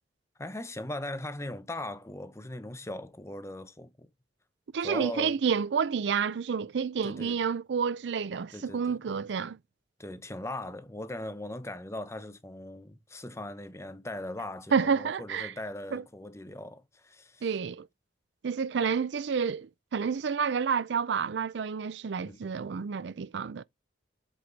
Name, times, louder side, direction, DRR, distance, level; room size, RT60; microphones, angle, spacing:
voice 1, 0.4-4.1 4.8-5.4 7.0-7.4 8.5-9.2 10.0-17.5 22.2-22.5, left 1 dB, 15° left, 0.9 m, -39 dB
voice 2, 4.7-9.6 14.7-15.5 15.9-16.0 17.4-17.9 18.4-23.6, right 6 dB, 70° right, 0.4 m, -29 dB
7.7 x 4.8 x 4.0 m
head